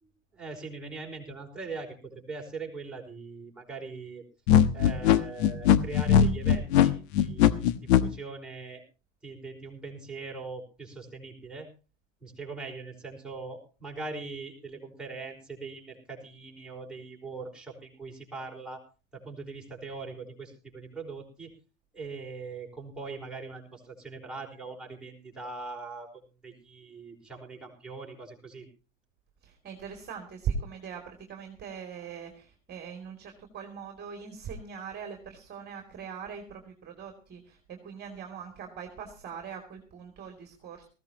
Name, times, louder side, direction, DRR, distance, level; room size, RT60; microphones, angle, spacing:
voice 1, 0.0-4.2 4.7-8.8 9.2-11.7 12.2-18.8 19.1-21.5 21.9-26.1 26.4-28.7, right 3 dB, ahead, -2 dB, 5.0 m, -41 dB
sound 1, 4.5-8.0, left 9 dB, 55° left, 1.2 m, -20 dB
voice 2, 29.4-40.9, right 6 dB, 25° right, 4 dB, 2.9 m, -40 dB
19.5 x 16.0 x 2.9 m, 0.34 s
hypercardioid pair, 105°, 39 cm